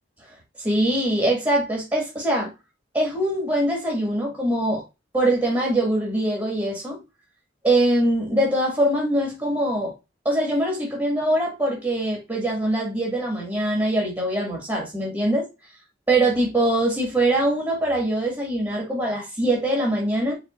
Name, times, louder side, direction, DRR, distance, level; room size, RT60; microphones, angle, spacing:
voice 1, 0.6-2.5 2.9-4.8 5.1-7.0 7.6-9.9 10.3-15.5 16.1-20.3, right 1 dB, 20° right, 1.9 m, -23 dB
5.1 x 4.1 x 2.4 m
head